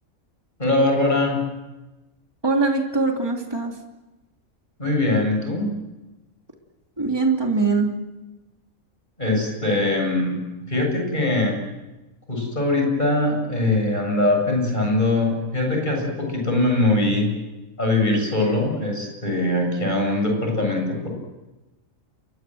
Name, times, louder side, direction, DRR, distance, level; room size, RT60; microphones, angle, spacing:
voice 1, 0.6-1.4 4.8-5.7 9.2-10.4 10.7-11.6 12.3-17.3 17.8-21.1, left 2 dB, 35° left, 1 dB, 7.9 m, -22 dB
voice 2, 2.4-3.8 7.0-8.0, right 3 dB, 20° right, 1 dB, 2.9 m, -22 dB
29.0 x 23.5 x 7.8 m, 1.1 s
omnidirectional pair, 1.4 m